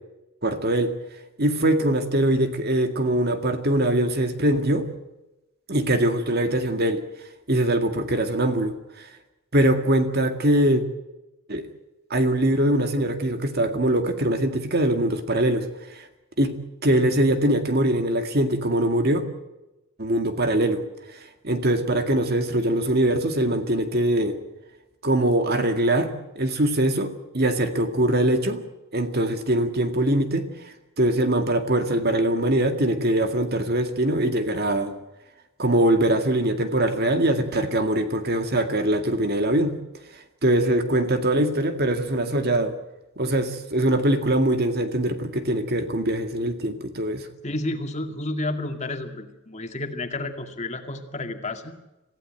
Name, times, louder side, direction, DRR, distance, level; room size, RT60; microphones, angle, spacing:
voice 1, 0.4-0.9 1.4-4.9 5.7-7.0 7.5-9.1 9.5-10.8 11.5-11.7 12.1-15.7 15.9-16.0 16.4-16.6 16.8-19.2 20.0-20.8 21.4-24.4 25.0-28.6 28.9-30.5 31.0-34.9 35.6-39.8 40.4-42.7 43.2-47.3, right 1 dB, 45° right, 7 dB, 2.1 m, -22 dB
voice 2, 47.4-51.8, left 2 dB, 30° left, 5 dB, 2.2 m, -31 dB
27.0 x 15.5 x 9.1 m, 0.99 s
head